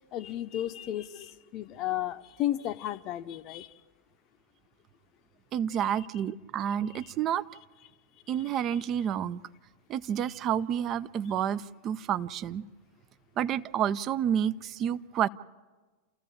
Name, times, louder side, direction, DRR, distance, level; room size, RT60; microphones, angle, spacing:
voice 1, 0.1-3.7 5.8-6.1 6.9-7.1 8.7-8.8, left 13 dB, 35° left, 0.7 m, -34 dB
voice 2, 5.5-7.4 8.3-9.4 9.9-12.7 13.4-15.3, right 9 dB, 35° right, 0.6 m, -29 dB
29.0 x 14.5 x 7.3 m
figure-of-eight pair, 90°, 0 cm